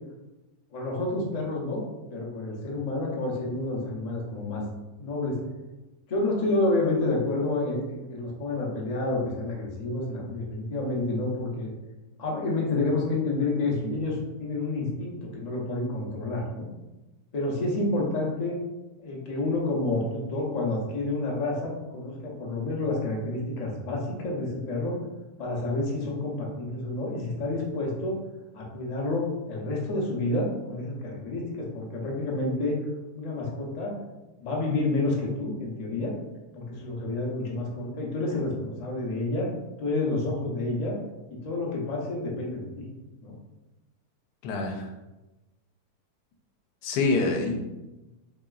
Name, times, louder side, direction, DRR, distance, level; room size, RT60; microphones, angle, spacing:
voice 1, 0.7-1.8 2.1-4.6 5.0-5.4 6.1-11.7 12.2-16.7 17.3-18.6 19.0-25.0 25.4-28.2 28.5-32.8 33.1-33.9 34.4-36.1 36.5-39.5 39.8-41.0 41.3-42.9 43.2-43.4, left 2 dB, 50° left, -2 dB, 0.4 m, -29 dB
voice 2, 44.4-44.9 46.8-47.6, left 3 dB, 85° left, 3 dB, 1.1 m, -26 dB
3.8 x 3.0 x 2.4 m, 1.1 s
omnidirectional pair, 1.7 m